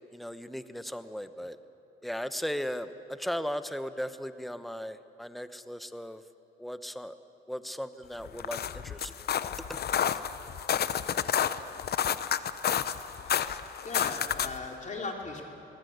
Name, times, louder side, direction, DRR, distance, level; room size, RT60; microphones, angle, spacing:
voice 1, 0.1-1.6 2.0-6.2 6.6-7.1 7.5-9.3 9.7-9.8 10.1-10.2, equal, ahead, 11 dB, 1.0 m, -37 dB
sound 1, 8.2-14.7, left 9 dB, 55° left, 0.8 m, -30 dB
voice 2, 13.8-15.5, left 3 dB, 40° left, 1 dB, 3.5 m, -38 dB
22.5 x 19.5 x 8.1 m, 2.9 s
cardioid pair, 90°, 20 cm